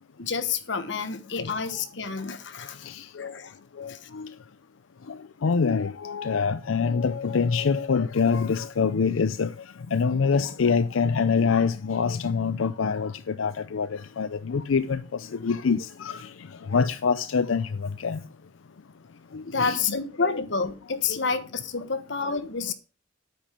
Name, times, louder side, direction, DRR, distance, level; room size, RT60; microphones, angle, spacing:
voice 1, 0.2-2.8 3.2-3.5 3.9-4.1 19.4-22.7, left 5 dB, 65° left, 1.3 m, -29 dB
voice 2, 2.8-3.3 3.8-4.3 5.1-5.2 5.4-9.5 9.9-15.0 15.3-16.2 16.7-18.2 19.3-19.8 20.2-20.3 21.1-21.2 22.2-22.4, left 5 dB, 90° left, 0.5 m, -25 dB
9.1 x 8.9 x 5.1 m
head